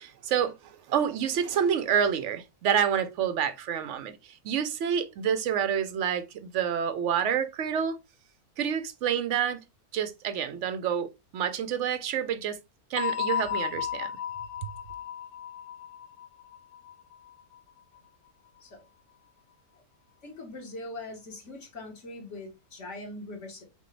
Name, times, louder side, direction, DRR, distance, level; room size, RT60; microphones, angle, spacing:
voice 1, 0.0-4.2 4.4-8.0 8.6-9.6 9.9-11.1 11.3-12.6 12.9-14.1, right 8 dB, 65° right, 0.7 m, -28 dB
sound 1, 13.0-17.6, left 10 dB, 90° left, 1.3 m, -34 dB
voice 2, 20.2-23.6, left 2 dB, 50° left, 1.6 m, -41 dB
6.3 x 2.2 x 3.2 m
omnidirectional pair, 1.6 m